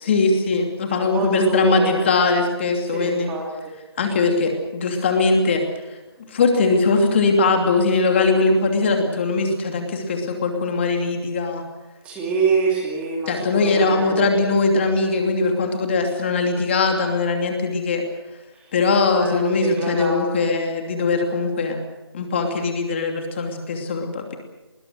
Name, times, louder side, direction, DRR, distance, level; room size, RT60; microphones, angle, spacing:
voice 1, 0.0-3.3 4.0-5.6 6.3-11.6 13.3-18.0 18.7-21.8 22.1-24.4, left 3 dB, 25° left, 4 dB, 2.8 m, -20 dB
voice 2, 1.0-1.9 2.9-3.7 12.0-14.4 19.1-20.5, right 4 dB, 10° right, -1 dB, 2.4 m, -25 dB
21.0 x 19.0 x 8.2 m, 1.1 s
figure-of-eight pair, 165°, 14 cm